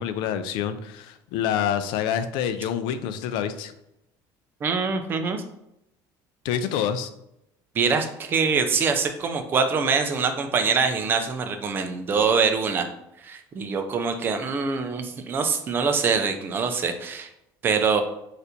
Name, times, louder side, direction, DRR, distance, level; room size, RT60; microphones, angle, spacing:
voice 1, 0.0-3.7 6.4-7.1, left 9 dB, 70° left, 11 dB, 0.4 m, -27 dB
voice 2, 4.6-5.4 7.8-12.9 13.2-17.3 17.6-18.0, right 5 dB, 25° right, 7 dB, 0.3 m, -24 dB
4.2 x 2.5 x 2.7 m, 0.83 s
cardioid pair, 170°, 9 cm